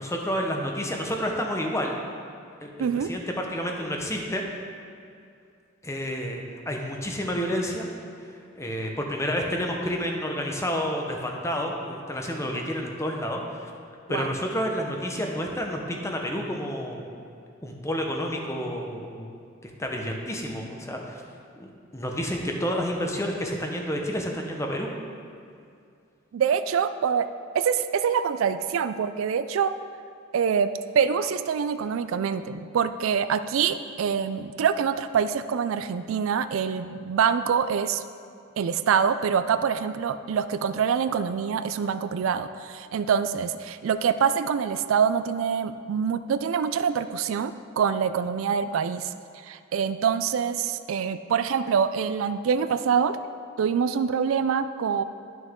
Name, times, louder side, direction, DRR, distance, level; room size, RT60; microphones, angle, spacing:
voice 1, 0.0-2.0 2.6-4.4 5.8-7.9 8.5-13.7 14.1-17.0 17.6-19.3 19.6-21.2 21.6-24.9, equal, 15° left, 1 dB, 0.8 m, -30 dB
voice 2, 2.8-3.1 14.1-14.3 26.3-27.3 27.5-29.7 30.3-38.0 38.6-49.1 49.5-53.2 53.6-55.0, right 7 dB, 80° right, 11 dB, 0.3 m, -25 dB
11.0 x 6.2 x 3.7 m, 2.4 s
head